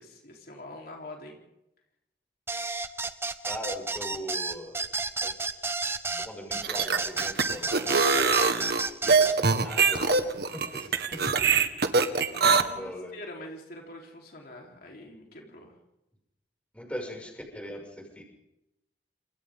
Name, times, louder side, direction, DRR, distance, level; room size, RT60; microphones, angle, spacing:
voice 1, 0.0-1.4 12.3-15.7, left 1 dB, 60° left, 0 dB, 4.1 m, -44 dB
sound 1, 2.5-9.4, right 3 dB, 15° right, 1.0 m, -32 dB
voice 2, 3.4-4.8 5.2-5.3 6.1-8.7 9.0-11.5 12.7-13.1 16.7-18.2, equal, 5° left, 0 dB, 6.7 m, -40 dB
sound 2, 6.5-12.6, right 4 dB, 65° right, 1.7 m, -23 dB
29.5 x 26.5 x 3.9 m, 0.88 s
head